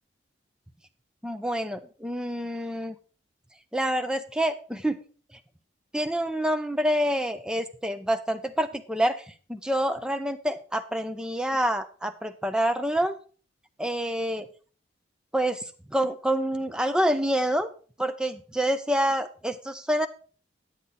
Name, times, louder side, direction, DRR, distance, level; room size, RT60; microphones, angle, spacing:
voice 1, 1.2-3.0 3.7-5.0 5.9-13.2 13.8-14.5 15.3-17.7 18.0-20.1, equal, 5° right, 8 dB, 0.6 m, -27 dB
8.7 x 8.4 x 4.1 m, 0.39 s
head